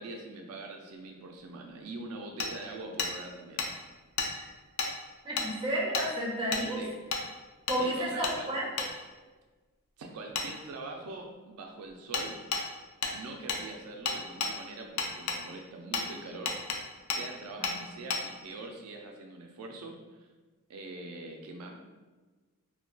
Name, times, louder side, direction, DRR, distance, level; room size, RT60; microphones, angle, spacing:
voice 1, 0.0-3.6 6.8-6.9 7.8-8.5 10.0-12.4 13.1-16.6 17.1-20.3 20.7-21.8, right 2 dB, 80° right, 2 dB, 0.3 m, -43 dB
Hammer, 2.4-2.5 3.0-3.1 3.6-3.7 4.2-4.3 4.8-4.9 5.4-5.5 5.9-6.1 6.5-6.7 7.1-7.2 7.7-7.8 8.2-8.4 8.8-8.9 10.4-10.5 12.1-12.3 12.5-12.6 13.0-13.2 13.5-13.6 14.1-14.5 15.0-15.4 15.9-16.1 16.5-16.8 17.1-17.2 17.6-17.8 18.1-18.2, left 4 dB, 80° left, 0.4 m, -31 dB
voice 2, 5.2-6.8 7.7-8.7 17.6-17.7, right 1 dB, 20° right, -4 dB, 0.6 m, -31 dB
2.2 x 2.1 x 3.7 m, 1.3 s
head